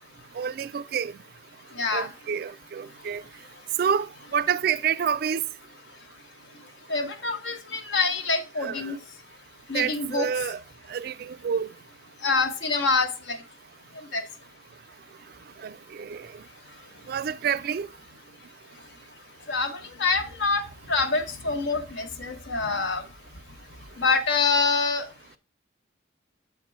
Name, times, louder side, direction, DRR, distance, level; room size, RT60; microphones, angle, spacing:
voice 1, 0.4-1.1 1.9-3.2 3.8-5.4 8.6-8.9 9.7-10.6 10.9-11.7 15.6-16.3 17.1-17.9, right 7 dB, 50° right, 0.3 m, -28 dB
voice 2, 1.7-2.1 6.9-9.0 9.7-10.3 12.2-13.4 14.1-14.2 19.5-23.0 24.0-25.1, left 4 dB, 70° left, 1.0 m, -26 dB
7.3 x 4.4 x 4.4 m
head